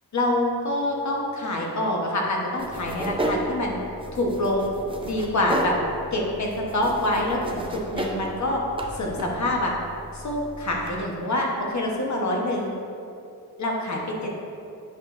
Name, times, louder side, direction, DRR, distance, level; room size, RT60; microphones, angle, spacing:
voice 1, 0.1-3.8 4.1-4.7 5.0-5.7 6.1-8.6 8.9-9.7 10.1-12.7 13.6-14.3, left 1 dB, 45° left, -1 dB, 1.1 m, -26 dB
sound 1, 2.6-11.0, right 1 dB, 15° right, 0.4 m, -33 dB
8.6 x 5.9 x 2.5 m, 2.6 s
wide cardioid pair, 160°, 39 cm